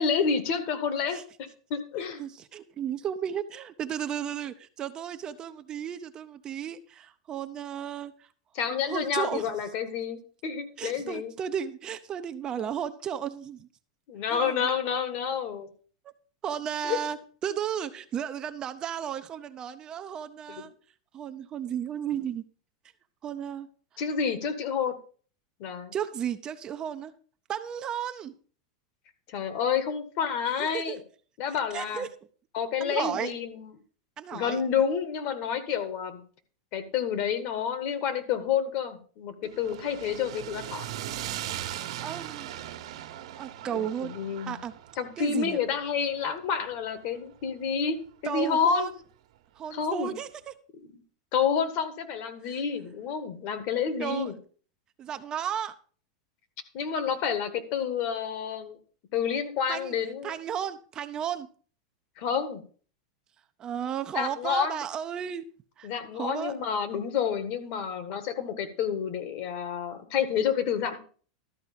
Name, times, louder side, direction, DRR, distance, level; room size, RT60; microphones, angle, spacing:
voice 1, 0.0-2.2 8.5-11.3 14.1-15.7 16.8-17.0 20.6-20.7 24.0-25.0 25.6-25.9 29.3-31.0 31.4-32.0 32.5-33.7 34.3-36.2 36.7-40.9 43.7-44.6 45.0-48.9 49.7-50.1 50.8-51.0 51.3-54.3 56.7-58.8 59.1-60.4 62.2-62.6 64.1-64.8 65.8-71.0, left 7 dB, 50° left, 10 dB, 1.7 m, -29 dB
voice 2, 2.2-8.3 8.9-9.5 10.8-13.7 14.3-14.7 16.4-17.2 17.4-20.7 21.1-22.4 23.2-23.7 25.9-27.1 27.5-28.3 30.6-31.0 31.7-32.1 32.8-33.3 34.2-34.6 42.0-42.5 43.4-44.1 44.5-44.7 45.2-45.6 48.2-48.9 49.6-50.3 52.4-52.6 54.0-54.3 55.0-55.7 59.7-60.0 60.2-61.5 63.6-65.4 65.8-65.9 66.1-66.5, right 9 dB, 25° right, 10 dB, 0.6 m, -34 dB
sound 1, 39.4-47.7, right 12 dB, 75° right, 1.3 m, -39 dB
12.5 x 4.6 x 6.8 m, 0.42 s
supercardioid pair, 150°, 3 cm